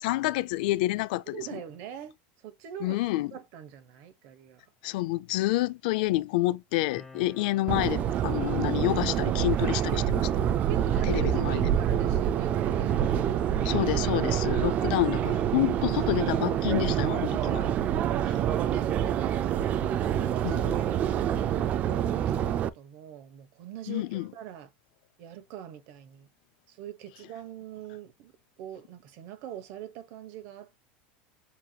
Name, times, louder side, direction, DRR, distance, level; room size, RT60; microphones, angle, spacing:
voice 1, 0.0-1.4 2.8-3.3 4.8-10.3 11.1-11.6 13.6-17.6 18.3-18.4 20.4-20.8 23.9-24.3, left 18 dB, 65° left, 0.4 m, -28 dB
voice 2, 1.3-2.1 2.4-3.0 3.3-4.7 10.7-13.3 14.6-14.8 18.7-18.9 19.7-24.7 25.2-26.3 26.7-30.8, right 10 dB, 50° right, 1.1 m, -43 dB
sound 1, 6.9-14.9, left 2 dB, 10° left, 0.8 m, -49 dB
Subway metro underground, 7.7-22.7, right 10 dB, 30° right, 0.3 m, -27 dB
7.1 x 2.9 x 2.3 m
supercardioid pair, 165°, 5 cm